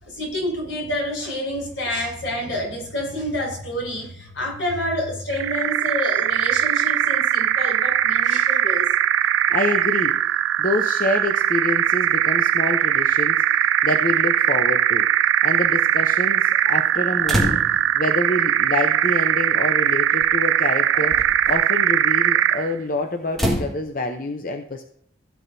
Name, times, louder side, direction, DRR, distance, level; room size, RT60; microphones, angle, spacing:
voice 1, 0.0-8.9, left 1 dB, 85° left, -2 dB, 4.9 m, -28 dB
sound 1, 5.3-22.7, right 10 dB, 80° right, 0.3 m, -20 dB
voice 2, 9.5-10.2 10.6-15.1 15.4-17.6 17.9-24.8, left 2 dB, 45° left, 5 dB, 0.7 m, -27 dB
sound 2, 17.2-18.0 19.2-19.3 20.2-20.4 20.9-21.5 23.3-23.7, equal, ahead, 1.8 m, -25 dB
16.5 x 8.2 x 2.7 m, 0.67 s
head